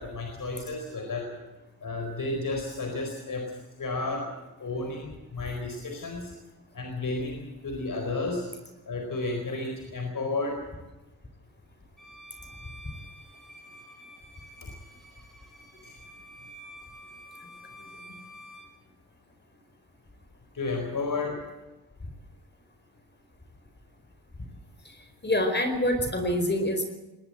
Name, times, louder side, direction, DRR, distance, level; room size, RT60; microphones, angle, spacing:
voice 1, 0.0-1.3 1.8-3.5 3.8-4.3 4.6-6.3 6.7-8.4 8.9-10.6 14.6-14.7 15.8-16.0 17.8-18.1 20.5-21.4, left 3 dB, 60° left, 3 dB, 4.5 m, -32 dB
Bowed string instrument, 12.0-18.8, equal, ahead, 6.7 m, -49 dB
voice 2, 25.2-26.8, left 1 dB, 30° left, 6 dB, 4.5 m, -26 dB
21.5 x 18.0 x 7.9 m, 1.1 s
cardioid pair, 80°, 37 cm